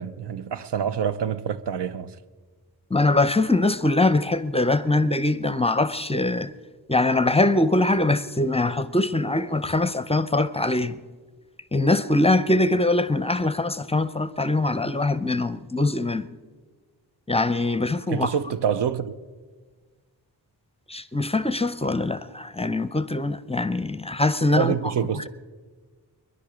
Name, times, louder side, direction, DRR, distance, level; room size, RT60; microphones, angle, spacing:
voice 1, 0.0-2.2 18.1-19.2 24.6-25.3, right 8 dB, 90° right, 0.7 m, -26 dB
voice 2, 2.9-6.5 6.9-11.0 11.7-16.3 17.3-18.3 20.9-24.7 25.2-25.3, left 2 dB, 15° left, 0.5 m, -22 dB
23.5 x 11.0 x 5.0 m
wide cardioid pair, 115°, 40 cm